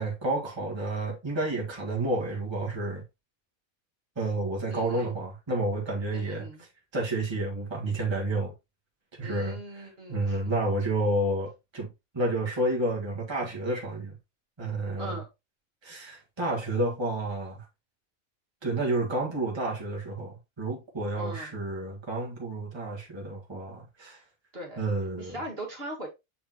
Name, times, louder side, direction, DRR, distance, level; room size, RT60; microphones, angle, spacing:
voice 1, 0.0-3.0 4.2-8.5 9.2-14.2 14.6-15.2 15.8-17.7 18.6-24.2 24.8-25.4, right 2 dB, 20° right, 1.7 m, -30 dB
voice 2, 4.7-5.1 6.1-6.7 9.2-10.5 15.0-15.3 21.2-21.6 24.5-24.8 25.2-26.1, right 1 dB, 45° right, 2.0 m, -40 dB
7.2 x 5.1 x 2.9 m
omnidirectional pair, 1.4 m